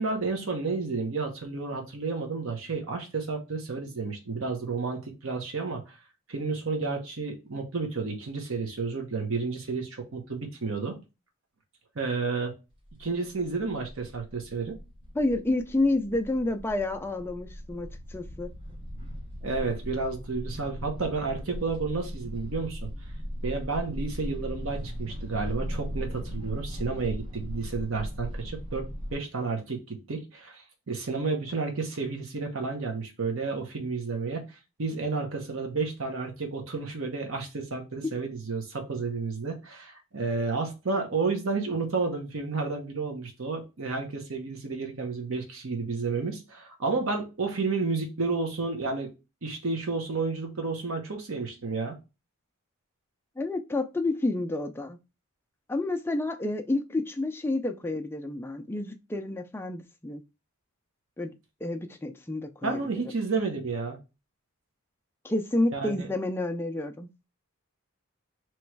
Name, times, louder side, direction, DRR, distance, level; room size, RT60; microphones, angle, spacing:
voice 1, 0.0-6.0 6.3-11.0 11.9-12.5 13.0-14.8 19.4-22.8 23.4-49.1 49.4-51.9 62.6-64.0 65.7-66.1, right 4 dB, 60° right, 0.9 m, -31 dB
sound 1, 12.7-29.1, equal, 25° right, 0.9 m, -38 dB
voice 2, 15.1-18.5 53.4-55.0 55.7-60.2 61.2-61.3 61.6-62.8 65.2-67.1, left 2 dB, 10° left, 0.3 m, -29 dB
3.1 x 3.0 x 4.6 m
head